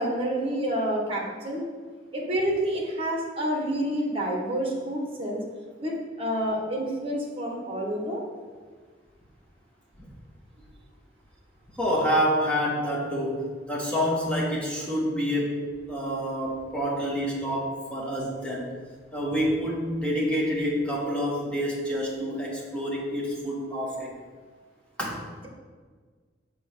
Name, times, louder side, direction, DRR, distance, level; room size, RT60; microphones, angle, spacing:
voice 1, 0.0-1.6 2.1-5.4 5.8-8.2, right 1 dB, 30° right, -1 dB, 1.6 m, -28 dB
voice 2, 11.8-15.6 15.9-18.7 19.1-24.1 25.0-25.2, equal, 5° left, -5 dB, 1.7 m, -27 dB
6.8 x 4.5 x 6.8 m, 1.5 s
head